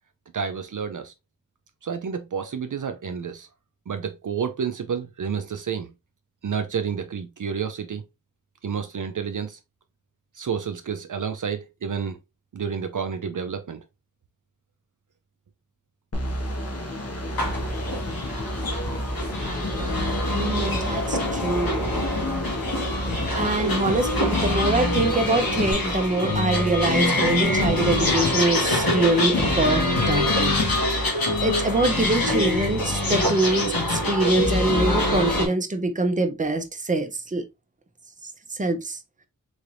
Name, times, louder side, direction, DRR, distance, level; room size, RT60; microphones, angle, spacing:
voice 1, 0.3-1.1 1.8-3.5 3.9-5.9 6.4-8.0 8.6-9.6 10.3-12.2 12.5-13.8, right 6 dB, 60° right, 0.5 m, -30 dB
sound 1, 16.1-25.7, equal, 45° left, 1.3 m, -31 dB
sound 2, 17.4-35.5, left 1 dB, 85° left, 1.5 m, -24 dB
voice 2, 19.9-21.8 23.3-30.6 30.8-31.1 31.4-37.5 38.2-39.0, right 2 dB, 20° right, 0.7 m, -25 dB
3.9 x 3.2 x 2.6 m
wide cardioid pair, 55°, 35 cm